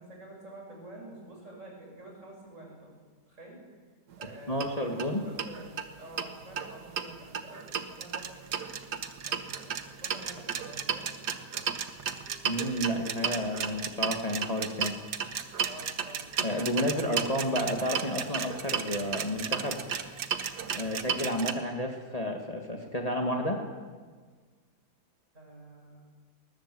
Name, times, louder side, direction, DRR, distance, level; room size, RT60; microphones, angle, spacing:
voice 1, 0.0-2.9 3.3-3.6 4.2-5.7 6.0-8.6 9.2-11.1 15.7-16.3 25.3-26.0, right 1 dB, 45° right, -1 dB, 7.2 m, -48 dB
sound 1, 4.1-4.3 4.6-4.7 5.0-5.1 5.4-6.3 6.6-21.5, right 7 dB, 75° right, 1.7 m, -34 dB
voice 2, 4.5-5.2 12.4-14.9 16.4-19.8 20.7-23.6, equal, 25° left, 2 dB, 1.9 m, -31 dB
20.5 x 20.0 x 7.7 m, 1.5 s
omnidirectional pair, 1.8 m